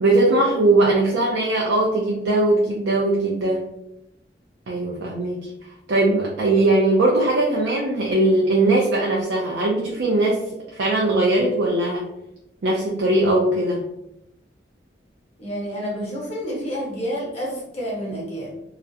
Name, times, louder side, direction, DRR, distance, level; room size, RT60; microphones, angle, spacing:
voice 1, 0.0-3.6 4.7-5.5 5.9-10.4 10.7-12.0 12.6-13.8, right 2 dB, 80° right, -3 dB, 0.4 m, -20 dB
voice 2, 15.4-18.5, equal, 35° left, -4 dB, 0.8 m, -29 dB
2.3 x 2.0 x 2.6 m, 0.86 s
head